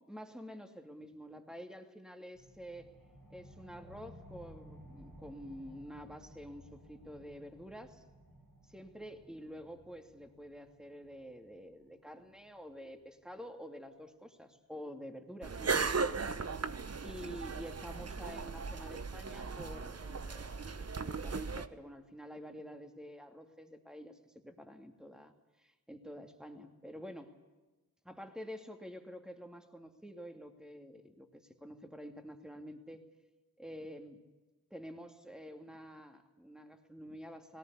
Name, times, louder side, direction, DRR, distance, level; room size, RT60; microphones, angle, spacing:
voice 1, 0.1-2.9 3.3-8.0 8.6-16.2 17.0-27.3 28.0-33.0 33.6-34.2 34.7-37.6, equal, ahead, 5 dB, 2.7 m, -49 dB
sound 1, 2.3-13.4, equal, 75° right, 6.9 m, -57 dB
sound 2, 15.4-21.7, right 4 dB, 45° right, 1.1 m, -37 dB
18.5 x 18.0 x 9.7 m, 1.2 s
cardioid pair, 50°, 34 cm